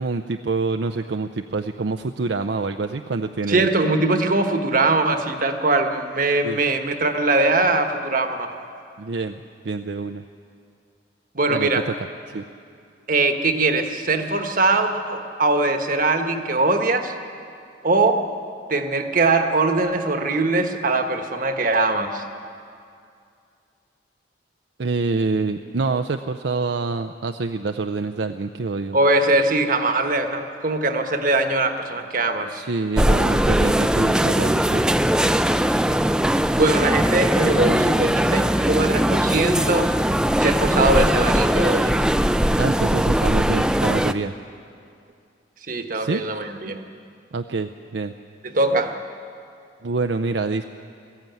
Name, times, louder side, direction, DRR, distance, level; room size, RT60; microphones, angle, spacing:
voice 1, 0.0-3.7 6.4-6.6 9.0-9.4 9.6-10.2 11.5-11.9 12.3-12.4 24.8-29.0 32.5-34.9 42.6-44.3 45.9-46.2 47.3-48.1 49.8-50.6, right 3 dB, 65° right, 6 dB, 0.5 m, -26 dB
voice 2, 3.5-8.5 11.3-11.9 13.1-17.1 17.8-18.3 18.7-22.2 28.9-32.6 36.5-39.9 40.4-42.0 45.7-46.8 48.4-49.0, right 2 dB, 45° right, 6 dB, 1.3 m, -21 dB
sound 1, 32.9-44.1, right 1 dB, 5° right, 0.4 m, -20 dB
20.5 x 14.5 x 9.3 m, 2.4 s
head